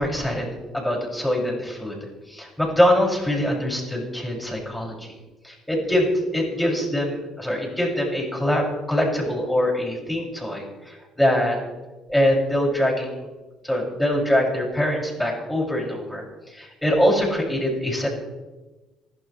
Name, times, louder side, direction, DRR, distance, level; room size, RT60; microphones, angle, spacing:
voice 1, 0.0-2.0 2.3-5.1 5.4-11.6 12.1-13.3 13.6-16.2 16.5-18.1, equal, 5° left, -2 dB, 6.9 m, -23 dB
27.5 x 12.5 x 3.4 m, 1.1 s
supercardioid pair, 80°, 0 cm